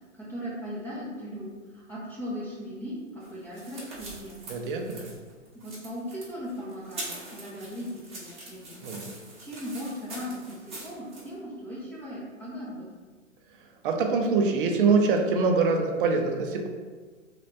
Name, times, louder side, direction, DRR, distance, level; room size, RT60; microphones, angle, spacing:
voice 1, 0.2-4.4 5.5-8.8 9.4-12.9, equal, 5° left, -9 dB, 0.7 m, -38 dB
sound 1, 3.2-11.3, right 2 dB, 15° right, 1.0 m, -43 dB
voice 2, 4.5-5.1 8.8-9.1 13.8-16.7, right 4 dB, 45° right, 3 dB, 0.6 m, -24 dB
3.2 x 3.1 x 2.6 m, 1.4 s
figure-of-eight pair, 115°, 38 cm